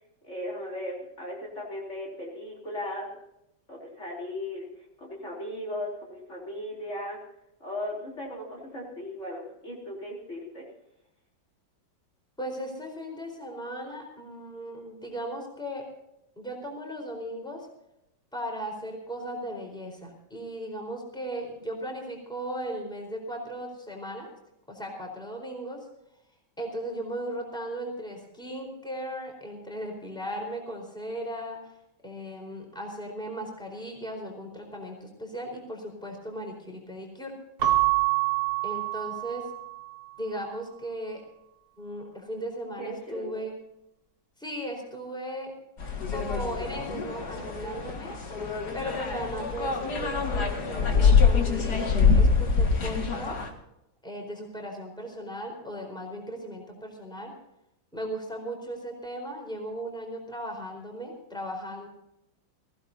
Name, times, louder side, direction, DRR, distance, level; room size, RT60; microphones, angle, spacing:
voice 1, 0.2-3.1 3.7-4.7 5.0-7.2 7.6-10.7 42.8-43.4, left 1 dB, 40° left, -4 dB, 4.1 m, -37 dB
voice 2, 12.4-15.9 16.4-17.7 18.3-24.3 24.7-25.9 26.6-31.7 32.0-37.3 38.6-39.5 40.2-41.2 41.8-43.6 44.4-45.5 46.1-48.1 48.7-53.4 54.0-57.3 57.9-61.9, equal, ahead, 2 dB, 4.3 m, -37 dB
Keyboard (musical) / Bell, 37.6-40.0, right 16 dB, 55° right, 1.7 m, -26 dB
sound 1, 45.8-53.5, left 5 dB, 60° left, 2.5 m, -25 dB
23.0 x 16.0 x 2.8 m, 0.82 s
omnidirectional pair, 2.0 m